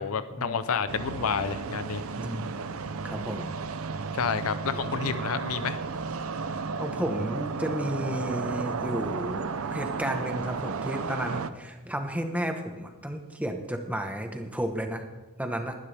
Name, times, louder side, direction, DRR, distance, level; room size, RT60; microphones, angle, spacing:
voice 1, 0.0-2.0 4.1-5.8, left 6 dB, 70° left, 12 dB, 0.6 m, -29 dB
sound 1, 0.9-11.5, right 4 dB, 70° right, 0.6 m, -33 dB
voice 2, 2.2-2.6 3.0-3.5 6.4-15.1 15.4-15.8, equal, 5° right, 5 dB, 1.2 m, -32 dB
20.0 x 11.5 x 3.5 m, 1.2 s
head